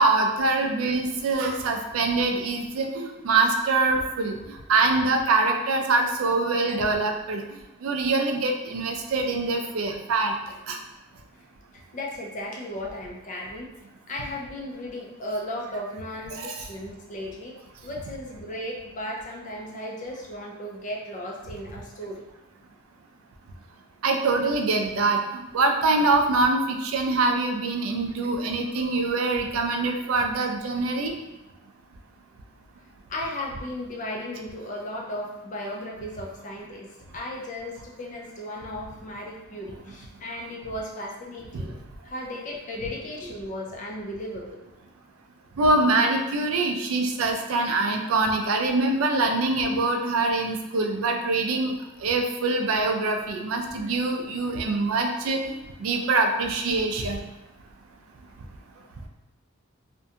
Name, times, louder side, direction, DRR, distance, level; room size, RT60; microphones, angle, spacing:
voice 1, 0.0-4.4 4.7-7.4 7.8-10.3 10.7-10.8 16.3-16.6 24.0-31.1 41.5-41.6 45.6-51.8 52.0-57.2, right 3 dB, 90° right, 4 dB, 0.4 m, -24 dB
voice 2, 11.7-13.7 14.1-17.6 17.8-22.2 33.1-36.9 37.1-44.6, left 1 dB, 40° left, -1 dB, 0.4 m, -35 dB
2.5 x 2.1 x 2.7 m, 1.0 s
head